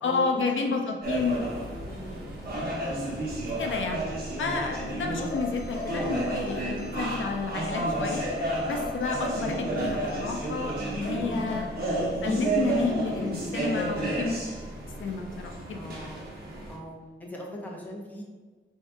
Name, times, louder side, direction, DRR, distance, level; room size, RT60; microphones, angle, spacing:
voice 1, 0.0-1.4 3.6-4.0 4.4-8.3 8.7-11.7 12.2-14.4 15.0-16.0, left 4 dB, 75° left, 3 dB, 0.5 m, -30 dB
sound 1, 1.0-16.8, right 2 dB, 50° right, 1.0 m, -32 dB
voice 2, 1.8-2.3 11.3-11.7 15.7-16.3 16.7-18.2, left 1 dB, 10° left, -2 dB, 0.7 m, -41 dB
sound 2, 5.2-7.4 8.1-10.5 10.9-13.1 14.1-14.4, left 3 dB, 40° left, 1.2 m, -39 dB
4.5 x 2.7 x 3.3 m, 1.3 s
wide cardioid pair, 160°, 20 cm